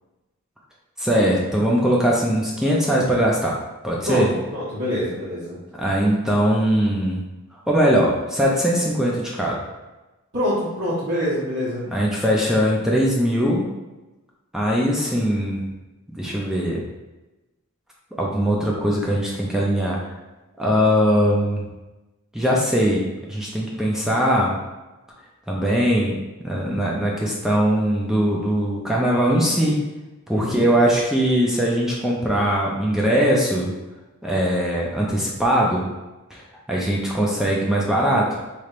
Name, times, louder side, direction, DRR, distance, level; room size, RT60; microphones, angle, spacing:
voice 1, 1.0-3.6 3.8-4.3 5.8-7.2 7.7-9.6 11.9-13.6 14.5-15.6 16.2-16.8 18.2-20.0 20.6-21.7 22.3-24.6 25.5-26.2 26.4-29.8 30.3-33.7 34.2-35.8 36.3-36.4 36.7-38.4, equal, ahead, -4 dB, 0.4 m, -20 dB
voice 2, 4.5-5.6 10.3-11.8 30.3-30.6, equal, 55° right, -13 dB, 1.3 m, -25 dB
4.2 x 3.3 x 2.5 m, 1.1 s
head